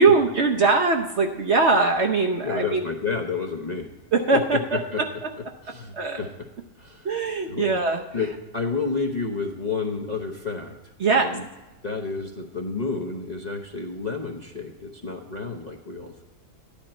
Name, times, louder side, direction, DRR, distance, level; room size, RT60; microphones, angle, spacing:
voice 1, 0.0-2.8 4.1-5.3 5.9-6.2 7.0-8.0 11.0-11.4, right 3 dB, 50° right, 2 dB, 0.9 m, -21 dB
voice 2, 2.4-3.9 4.3-4.4 4.7-5.0 5.6-6.3 6.8-7.1 7.5-7.7 8.1-10.8 11.2-11.4 11.8-16.2, left 4 dB, 35° left, 1 dB, 0.8 m, -30 dB
13.5 x 10.5 x 4.3 m, 1.1 s
omnidirectional pair, 1.8 m